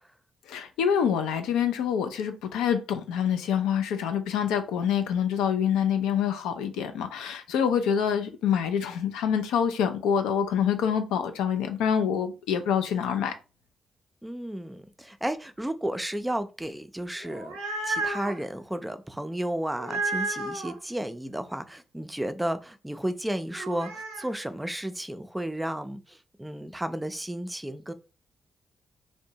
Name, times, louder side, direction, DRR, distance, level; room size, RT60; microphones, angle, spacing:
voice 1, 0.5-13.4, left 8 dB, 75° left, 0.3 m, -26 dB
voice 2, 14.2-17.5 17.8-27.9, right 1 dB, 10° right, 0.4 m, -33 dB
sound 1, 17.2-18.4 19.8-20.7 23.6-24.3, right 2 dB, 85° right, 0.5 m, -32 dB
2.5 x 2.1 x 2.7 m
hypercardioid pair, 40°, 0 cm